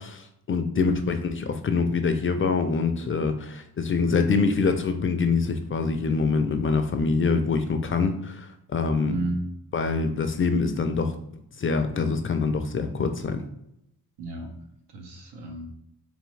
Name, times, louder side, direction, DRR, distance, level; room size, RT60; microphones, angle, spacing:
voice 1, 0.0-9.2 9.7-11.2 11.6-13.4, left 4 dB, 35° left, 7 dB, 0.4 m, -25 dB
voice 2, 0.7-1.1 4.3-4.4 9.0-9.5 14.2-14.5 14.9-15.7, right 2 dB, 90° right, 2 dB, 1.0 m, -32 dB
3.6 x 3.5 x 3.2 m, 0.79 s
cardioid pair, 110°, 40 cm